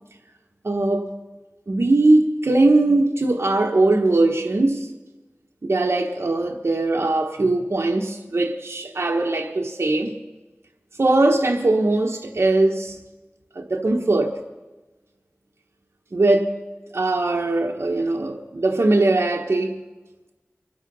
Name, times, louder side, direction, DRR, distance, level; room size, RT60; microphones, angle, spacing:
voice 1, 0.6-1.1 1.7-4.9 5.6-10.1 11.0-13.0 13.5-14.3 16.1-16.5 16.9-19.8, right 2 dB, 70° right, 1.1 m, -20 dB
24.0 x 8.3 x 5.4 m
wide cardioid pair, 50°, 5 cm